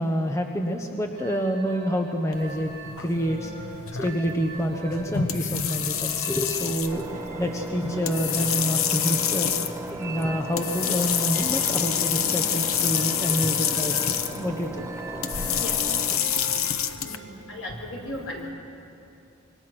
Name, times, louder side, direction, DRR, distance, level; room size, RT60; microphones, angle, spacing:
voice 1, 0.0-2.7 3.0-3.5 4.0-14.8, equal, 15° left, 3 dB, 1.0 m, -28 dB
sound 1, 1.1-17.5, right 2 dB, 40° right, 5.7 m, -42 dB
sound 2, 2.3-17.2, left 8 dB, 90° left, 1.0 m, -28 dB
Engine, 6.9-16.2, right 2 dB, 15° right, 0.4 m, -37 dB
voice 2, 17.0-18.5, left 1 dB, 70° left, 0 dB, 4.5 m, -36 dB
26.0 x 22.0 x 6.1 m, 2.7 s
head